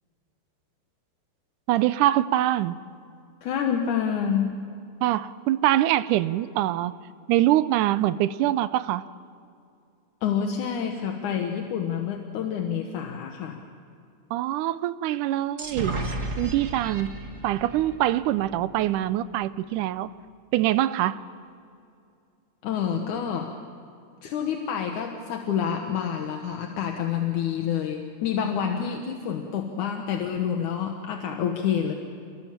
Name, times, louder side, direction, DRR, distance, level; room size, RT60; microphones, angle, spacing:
voice 1, 1.7-2.8 5.0-6.9 7.3-9.0 14.3-16.0 16.4-17.1 17.4-20.1 20.5-21.2, right 14 dB, 90° right, 15 dB, 2.2 m, -24 dB
voice 2, 3.4-4.7 10.2-13.6 22.6-23.5 24.2-31.9, left 8 dB, 75° left, 3 dB, 2.8 m, -28 dB
sound 1, 15.6-19.3, right 2 dB, 30° right, 1.7 m, -34 dB
29.0 x 21.5 x 7.4 m, 2.5 s
omnidirectional pair, 3.5 m